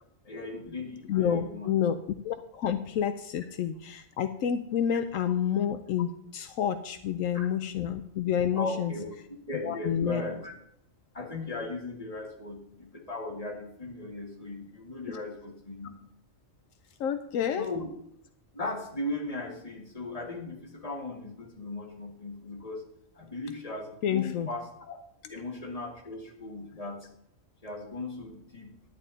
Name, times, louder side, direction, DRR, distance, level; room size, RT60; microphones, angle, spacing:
voice 1, 0.2-1.8 7.3-7.5 8.6-9.1 9.5-10.5 11.1-15.9 17.6-17.9 18.5-22.8 23.2-25.0 25.3-27.0 27.6-28.7, left 2 dB, 25° left, 0 dB, 2.0 m, -37 dB
voice 2, 1.1-8.9 9.6-10.2 15.1-15.2 17.0-17.7 24.0-24.5, left 9 dB, 80° left, 10 dB, 1.0 m, -29 dB
11.0 x 9.7 x 4.0 m, 0.71 s
omnidirectional pair, 1.4 m